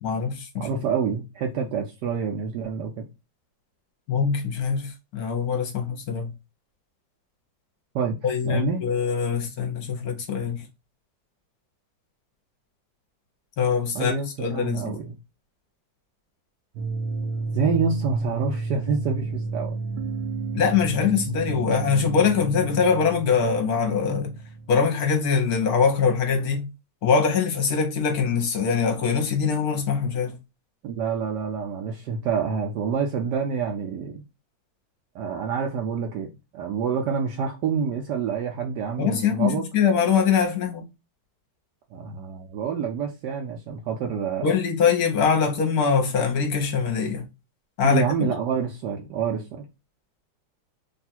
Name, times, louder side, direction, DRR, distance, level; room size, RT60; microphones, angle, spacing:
voice 1, 0.0-0.7 4.1-6.3 8.2-10.6 13.6-14.1 14.4-15.0 20.5-24.3 24.7-26.7 27.0-30.4 39.0-40.8 44.4-47.2 47.8-48.0, left 6 dB, 60° left, 1.2 m, -23 dB
voice 2, 0.6-3.1 7.9-8.2 8.4-8.8 13.9-15.1 17.5-19.7 30.8-34.2 35.1-36.3 36.5-39.7 41.9-44.7 47.8-49.7, right 6 dB, 70° right, 1.2 m, -27 dB
sound 1, 16.8-25.5, right 3 dB, 90° right, 1.4 m, -32 dB
3.5 x 2.5 x 4.2 m
omnidirectional pair, 2.0 m